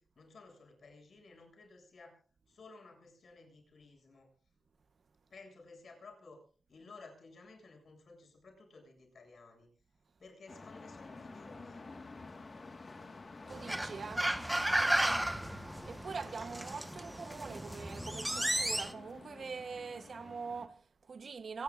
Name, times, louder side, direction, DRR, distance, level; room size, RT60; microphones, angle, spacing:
voice 1, 0.0-2.2 2.5-4.3 5.3-6.4 6.7-9.7 10.2-11.9 16.4-16.6, left 3 dB, 70° left, 7.6 m, -56 dB
sound 1, 10.5-20.7, left 3 dB, 40° left, 1.8 m, -51 dB
sound 2, 13.5-18.9, right 1 dB, 10° right, 1.4 m, -34 dB
voice 2, 13.5-14.3 15.9-21.6, right 5 dB, 60° right, 1.1 m, -43 dB
26.0 x 20.0 x 2.6 m
wide cardioid pair, 130°, 0 cm